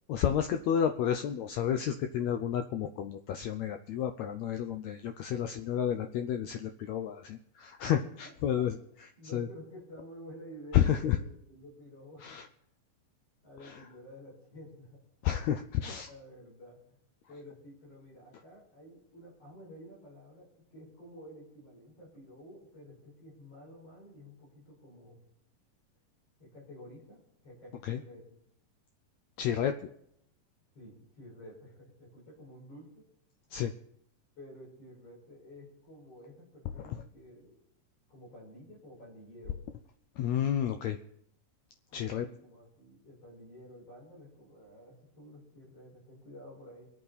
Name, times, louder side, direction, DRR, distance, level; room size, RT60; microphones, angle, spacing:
voice 1, 0.1-8.7 9.3-9.5 10.7-11.2 12.2-12.4 13.6-13.7 15.2-16.1 27.8-28.0 29.4-29.7 33.5-33.7 40.2-41.0 41.9-42.3, left 9 dB, 90° left, 6 dB, 1.5 m, -30 dB
voice 2, 8.0-8.6 9.2-12.4 13.4-15.0 15.9-17.0 17.3-25.2 26.4-28.4 30.7-32.9 34.4-37.6 38.1-39.6 41.9-46.9, equal, 45° left, -3 dB, 6.4 m, -51 dB
24.0 x 8.7 x 4.1 m, 0.74 s
omnidirectional pair, 4.0 m